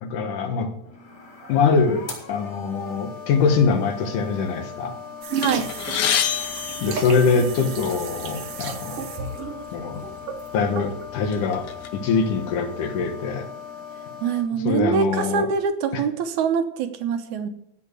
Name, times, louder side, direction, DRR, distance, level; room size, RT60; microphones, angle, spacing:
voice 1, 0.0-0.7 1.5-5.0 6.8-9.1 9.7-10.0 10.5-11.7 11.9-13.5 14.6-15.5 15.9-16.0, left 5 dB, 80° left, 6 dB, 3.0 m, -23 dB
sound 1, 0.8-14.4, left 6 dB, 40° left, 5.0 m, -39 dB
sound 2, 5.2-11.1, right 7 dB, 60° right, 1.8 m, -33 dB
sound 3, 5.4-7.8 8.6-8.7 9.0-9.2 10.1-10.2 10.7-11.9, left 9 dB, 65° left, 1.4 m, -27 dB
voice 2, 5.4-5.7 14.2-17.5, right 6 dB, 75° right, 8 dB, 2.4 m, -24 dB
16.0 x 5.7 x 8.1 m, 0.79 s
omnidirectional pair, 3.6 m